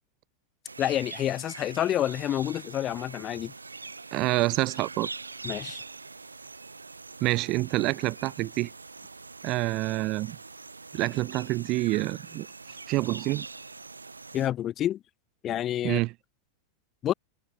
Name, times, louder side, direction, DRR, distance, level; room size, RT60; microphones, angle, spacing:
sound 1, 0.6-14.5, right 3 dB, 80° right, 1.1 m, -43 dB
voice 1, 0.8-3.5 5.4-5.8 14.3-15.0 15.4-16.0 17.0-17.1, left 12 dB, 30° left, 0.6 m, -28 dB
voice 2, 4.1-5.1 7.2-8.7 9.4-10.4 10.9-12.5 12.9-13.5 15.8-16.1, right 20 dB, 40° right, 0.9 m, -27 dB
figure-of-eight pair, 90°, 0 cm